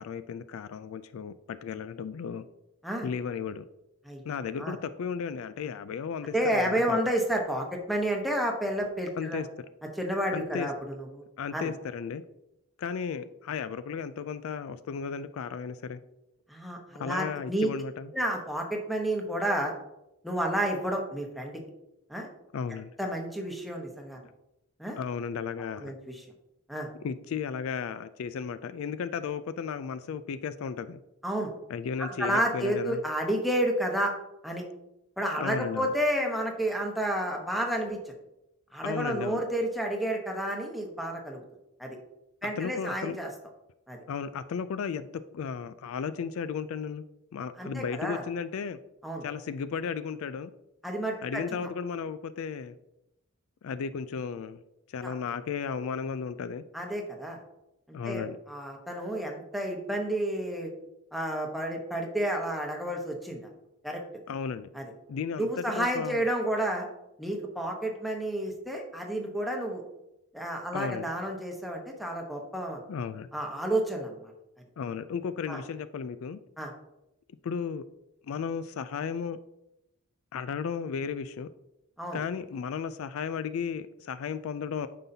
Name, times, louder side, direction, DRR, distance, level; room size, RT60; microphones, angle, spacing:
voice 1, 0.0-2.5 3.0-3.6 4.2-7.0 9.2-9.7 10.3-10.7 11.4-12.2 12.8-16.0 17.0-18.1 22.5-22.9 25.0-25.9 27.0-31.0 31.7-33.0 35.4-35.9 38.8-39.4 42.4-43.2 44.1-45.1 45.3-47.0 47.3-48.8 49.2-50.5 51.2-52.7 53.6-54.6 54.9-56.6 57.9-58.4 64.3-64.7 65.1-66.2 70.7-71.1 72.9-73.3 74.8-76.4 77.4-77.8 78.3-79.4 80.3-81.5 82.1-84.9, left 6 dB, 65° left, 14 dB, 0.3 m, -34 dB
voice 2, 6.3-9.4 10.0-11.2 11.5-11.7 16.5-17.7 18.1-19.7 20.2-21.6 22.1-22.3 23.0-24.2 24.8-25.0 25.8-26.2 26.7-26.9 31.2-31.5 32.0-34.1 34.4-34.6 35.2-38.1 38.7-41.4 41.8-42.0 42.4-43.3 43.9-44.0 47.6-48.2 49.0-49.2 50.8-51.4 55.0-55.1 56.7-57.4 58.0-60.7 61.1-63.5 63.8-64.0 64.7-64.9 65.4-66.9 67.2-69.8 70.3-72.8 73.3-74.3 75.5-75.6 76.6-76.7 82.0-82.2, right 1 dB, ahead, 1 dB, 1.0 m, -30 dB
9.1 x 5.6 x 2.8 m, 0.89 s
head